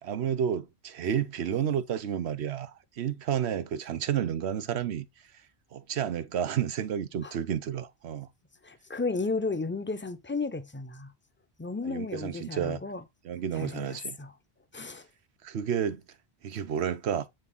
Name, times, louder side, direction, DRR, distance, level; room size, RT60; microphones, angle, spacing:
voice 1, 0.0-5.1 5.7-8.3 11.8-12.8 13.2-14.2 15.4-16.0 16.4-17.3, right 9 dB, 90° right, 1.0 m, -31 dB
voice 2, 8.6-11.1 11.6-13.0 13.5-14.3 14.7-15.1, left 3 dB, 10° left, 0.7 m, -33 dB
9.0 x 3.5 x 3.8 m
omnidirectional pair, 1.1 m